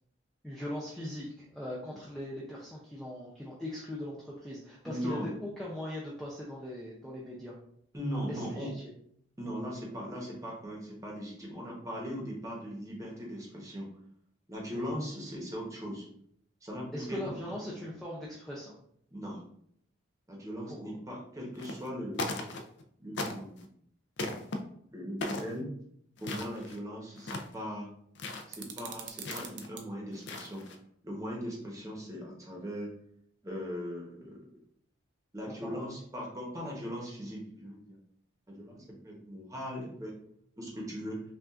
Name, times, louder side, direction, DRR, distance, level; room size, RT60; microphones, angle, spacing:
voice 1, 0.4-7.6 8.3-8.8 14.7-14.9 16.9-18.7 20.7-20.9 35.5-35.9, left 1 dB, ahead, -6 dB, 0.4 m, -40 dB
voice 2, 4.8-5.3 7.9-8.7 9.4-13.9 14.5-16.1 16.6-17.9 19.1-19.4 20.3-22.3 23.0-23.7 24.9-25.7 26.2-27.9 28.5-30.6 31.0-33.0 33.4-34.4 35.3-38.0 38.5-40.1 40.6-41.2, equal, 15° right, -2 dB, 0.9 m, -39 dB
sound 1, 21.5-21.9 22.1-22.8 23.2-23.7 24.2-24.6 25.2-25.6 26.2-26.8 27.2-27.6 28.1-28.5 29.2-29.7 30.1-30.8, left 2 dB, 60° left, 0.4 m, -37 dB
sound 2, 28.5-29.9, right 7 dB, 60° right, 0.5 m, -44 dB
5.5 x 2.4 x 2.4 m, 0.68 s
head